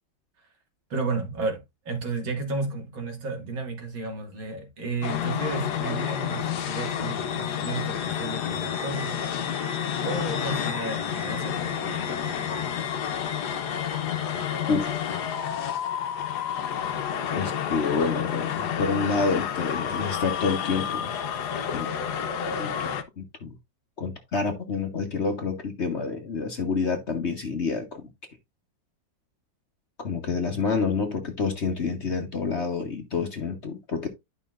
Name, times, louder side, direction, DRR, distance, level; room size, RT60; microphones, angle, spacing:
voice 1, 0.9-9.2 10.0-12.9 18.1-18.2, right 3 dB, 85° right, 2.8 m, -33 dB
sound 1, 5.0-23.0, left 8 dB, 65° left, 1.3 m, -30 dB
voice 2, 17.3-21.1 21.7-21.9 22.6-23.5 24.0-28.0 30.0-34.1, left 4 dB, 40° left, 1.2 m, -28 dB
11.5 x 5.6 x 2.5 m
omnidirectional pair, 2.1 m